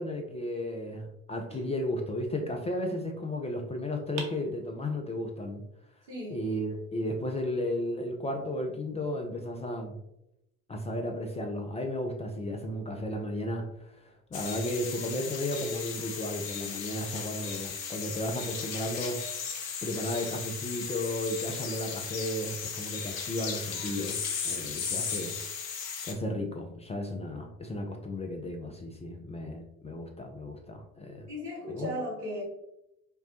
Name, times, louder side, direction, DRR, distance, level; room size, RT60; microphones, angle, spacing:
voice 1, 0.0-5.6 6.3-10.0 10.7-19.2 19.8-25.4 26.0-31.2 31.7-31.9, left 1 dB, 15° left, 3 dB, 0.3 m, -34 dB
sound 1, 1.5-2.6 4.2-5.2, right 5 dB, 55° right, 0.9 m, -45 dB
voice 2, 6.1-6.5 31.3-32.4, left 1 dB, 90° right, -4 dB, 1.3 m, -36 dB
sound 2, 14.3-26.1, left 6 dB, 50° left, 0.8 m, -36 dB
5.0 x 2.1 x 2.8 m, 0.83 s
figure-of-eight pair, 60°, 47 cm